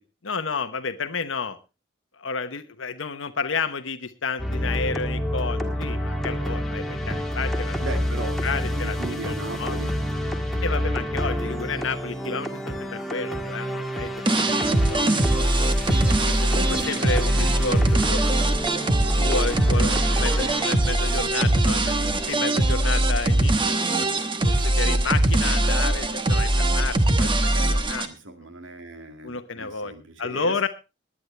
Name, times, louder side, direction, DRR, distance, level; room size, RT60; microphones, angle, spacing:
voice 1, 0.2-1.6 2.1-7.8 8.4-9.8 10.6-15.7 16.2-18.3 18.8-23.5 24.4-28.1 29.2-29.9 30.2-30.7, left 4 dB, 90° left, 10 dB, 1.0 m, -31 dB
sound 1, 4.4-20.7, equal, ahead, 1.7 m, -29 dB
voice 2, 7.8-9.9 17.3-18.1 27.5-27.7 28.0-30.7, right 2 dB, 80° right, 6 dB, 2.2 m, -38 dB
sound 2, 14.3-28.1, right 1 dB, 25° right, 1.1 m, -21 dB
20.5 x 9.9 x 3.3 m, 0.28 s
head